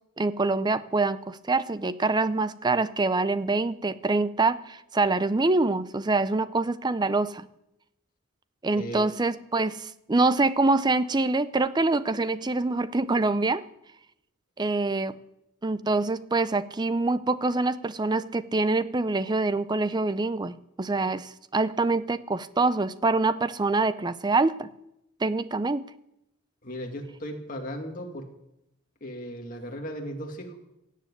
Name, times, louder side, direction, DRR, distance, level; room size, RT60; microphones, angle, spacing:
voice 1, 0.2-7.5 8.6-13.6 14.6-15.2 15.6-24.7 25.2-25.9, right 3 dB, 20° right, 15 dB, 0.5 m, -25 dB
voice 2, 8.7-9.1 26.6-28.3 29.0-30.7, equal, 40° left, 1 dB, 2.4 m, -36 dB
17.0 x 7.5 x 8.5 m, 0.83 s
head